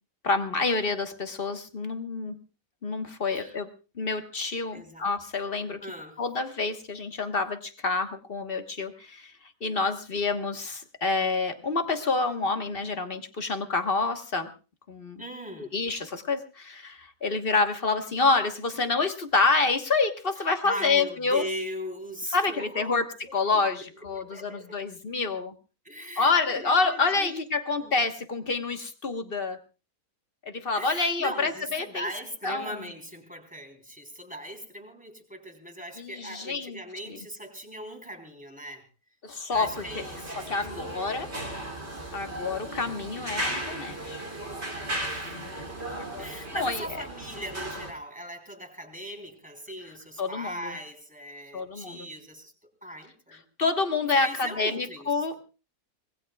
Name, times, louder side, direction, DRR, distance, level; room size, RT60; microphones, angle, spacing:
voice 1, 0.2-2.4 2.8-3.7 3.9-5.9 6.2-14.5 14.9-15.2 15.6-21.5 22.3-23.1 23.3-25.5 26.2-29.6 30.4-32.1 32.4-32.7 36.0-36.8 37.1-37.2 39.2-40.0 40.4-41.3 42.1-44.2 45.4-45.5 45.9-46.9 50.2-50.7 51.5-52.1 53.6-55.4, left 3 dB, 35° left, 7 dB, 1.4 m, -28 dB
voice 2, 4.7-5.1 5.8-6.2 15.2-15.7 20.4-23.0 23.2-23.3 24.1-24.8 25.9-27.4 27.8-27.9 30.7-38.8 39.5-41.2 45.0-45.9 46.2-52.5 52.8-53.4 54.0-55.3, equal, 5° right, 3 dB, 3.6 m, -39 dB
sound 1, 39.5-47.9, right 1 dB, 40° right, 3.2 m, -36 dB
25.5 x 19.5 x 2.3 m, 0.34 s
omnidirectional pair, 1.8 m